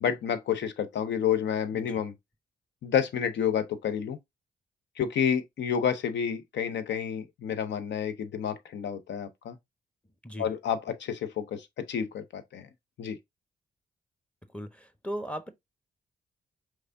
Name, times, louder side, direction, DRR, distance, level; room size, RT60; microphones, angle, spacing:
voice 1, 0.0-2.1 2.8-4.2 5.0-9.6 10.4-12.7 13.0-13.2, left 8 dB, 70° left, 0.8 m, -29 dB
voice 2, 14.5-15.5, equal, 5° left, 0.9 m, -37 dB
4.7 x 3.2 x 2.6 m
supercardioid pair, 50°, 19 cm